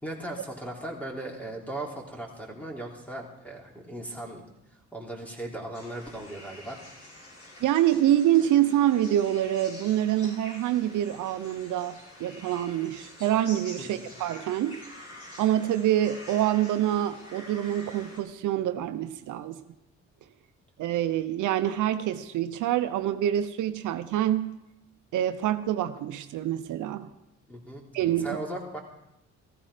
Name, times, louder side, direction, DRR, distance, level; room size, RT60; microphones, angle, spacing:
voice 1, 0.0-4.4 4.9-6.8 13.8-14.1 27.5-27.8 28.2-28.8, right 1 dB, 5° left, -1 dB, 3.5 m, -37 dB
sound 1, 5.7-18.2, left 1 dB, 50° left, 6.3 m, -47 dB
voice 2, 7.6-14.8 15.4-19.6 20.8-24.6 25.1-27.1 27.9-28.4, right 12 dB, 80° right, 10 dB, 0.8 m, -26 dB
15.0 x 14.0 x 5.0 m, 0.88 s
cardioid pair, 90°, 30 cm